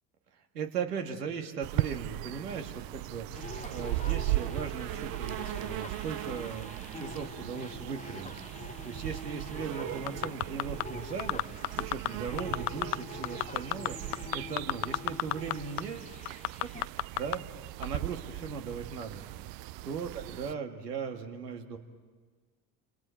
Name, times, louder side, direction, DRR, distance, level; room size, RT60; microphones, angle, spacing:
voice 1, 0.3-8.3 8.6-16.1 16.6-16.7 17.1-17.4 17.8-19.3 19.8-21.8, right 6 dB, 85° right, 5 dB, 1.9 m, -38 dB
sound 1, 1.6-20.5, right 19 dB, 50° right, 0.5 m, -38 dB
sound 2, 3.3-16.9, left 4 dB, 15° left, 0.9 m, -46 dB
sound 3, 10.1-10.8 11.2-12.1 12.4-13.0 13.2-15.5 15.8-15.9 16.3-17.4 17.8-17.9, left 24 dB, 55° left, 0.6 m, -29 dB
29.0 x 26.0 x 4.5 m, 1.5 s
hypercardioid pair, 70°, 46 cm